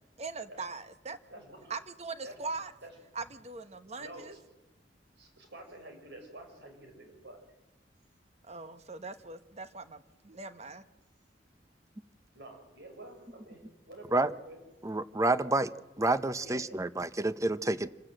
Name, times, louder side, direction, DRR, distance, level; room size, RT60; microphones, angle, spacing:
voice 1, 0.2-1.2 1.7-2.7 3.1-4.4 8.5-10.8, right 4 dB, 40° right, 10 dB, 1.2 m, -41 dB
voice 2, 1.3-1.7 2.2-2.5 2.8-2.9 4.0-4.4 5.2-7.4 12.3-14.6 16.4-16.8, right 1 dB, 70° right, 4 dB, 6.0 m, -49 dB
voice 3, 14.8-15.7 16.0-17.9, right 2 dB, 20° right, 14 dB, 0.6 m, -28 dB
27.5 x 16.5 x 7.7 m, 1.1 s
head